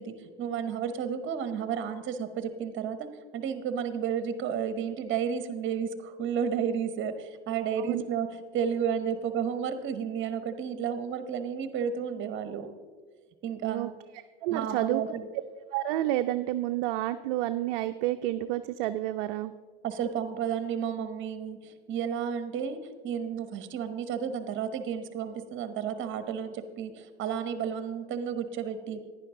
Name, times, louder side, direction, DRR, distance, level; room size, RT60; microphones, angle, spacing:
voice 1, 0.0-3.1 3.3-12.7 13.4-13.9 14.5-15.3 19.8-22.8 23.0-29.1, right 7 dB, 35° right, 10 dB, 1.0 m, -32 dB
voice 2, 14.4-15.0 15.7-19.5, right 14 dB, 55° right, 9 dB, 0.5 m, -29 dB
10.5 x 10.0 x 3.7 m, 1.5 s
hypercardioid pair, 100°, 35 cm